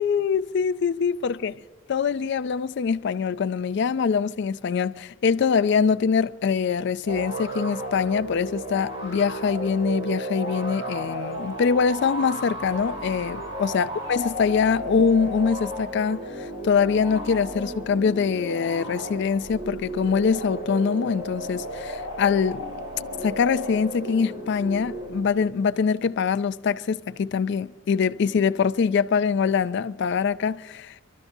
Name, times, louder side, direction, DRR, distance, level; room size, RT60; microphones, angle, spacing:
voice 1, 0.0-1.5 1.9-16.2 16.6-22.6 23.2-30.9, left 6 dB, 60° left, 0.4 m, -24 dB
sound 1, 7.1-25.5, right 1 dB, 30° right, 5.1 m, -34 dB
29.5 x 12.5 x 2.7 m
head